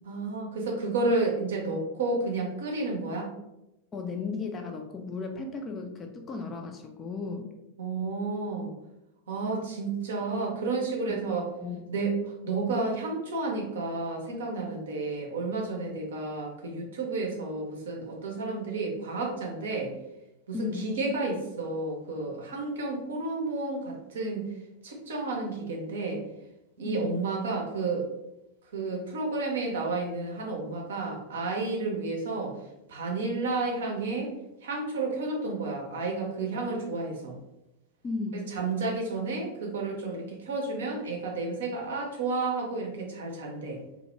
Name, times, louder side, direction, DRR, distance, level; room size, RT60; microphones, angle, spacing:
voice 1, 0.1-3.3 7.8-8.7 9.3-11.5 11.9-19.9 20.5-24.5 24.8-26.2 26.8-28.1 28.7-32.6 32.9-34.3 34.6-37.4 38.3-43.8, right 3 dB, 60° right, 0 dB, 0.6 m, -31 dB
voice 2, 3.9-7.5 11.1-11.3 11.6-11.8 20.5-20.9 26.8-27.1 38.0-38.5, left 4 dB, 20° left, 3 dB, 0.3 m, -35 dB
2.1 x 2.1 x 3.0 m, 0.91 s
figure-of-eight pair, 90°, 0 cm